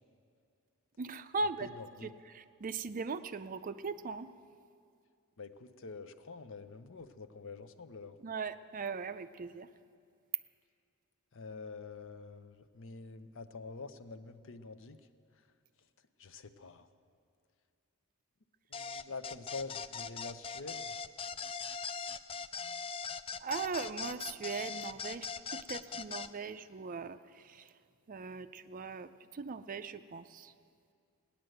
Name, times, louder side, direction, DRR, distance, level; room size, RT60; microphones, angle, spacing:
voice 1, 1.0-1.7 2.0-4.3 8.2-9.7 23.4-27.7 28.1-30.5, right 4 dB, 40° right, 11 dB, 0.4 m, -39 dB
voice 2, 1.6-2.1 5.4-8.2 11.3-15.0 16.2-16.9 18.7-21.0, left 4 dB, 60° left, 10 dB, 0.7 m, -46 dB
sound 1, 18.7-26.3, left 6 dB, 25° left, 0.3 m, -40 dB
17.0 x 10.5 x 7.8 m, 2.3 s
head